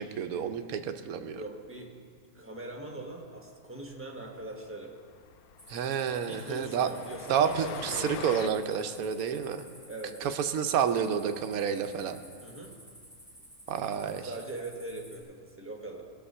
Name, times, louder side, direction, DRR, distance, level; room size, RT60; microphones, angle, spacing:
voice 1, 0.0-1.4 5.7-6.9 7.3-9.7 10.2-12.2 13.7-14.3, right 7 dB, 75° right, 8 dB, 1.2 m, -29 dB
voice 2, 1.3-2.0 2.3-5.0 6.3-8.7 9.9-10.3 12.4-12.8 14.3-16.1, right 2 dB, 10° right, 1 dB, 1.3 m, -41 dB
Train, 3.9-4.0 4.3-4.4 4.7-4.8 5.1-8.5, left 10 dB, 80° left, 1.0 m, -44 dB
sound 1, 5.6-15.2, equal, 25° left, 2.6 m, -53 dB
20.0 x 6.7 x 5.6 m, 2.1 s
omnidirectional pair, 1.6 m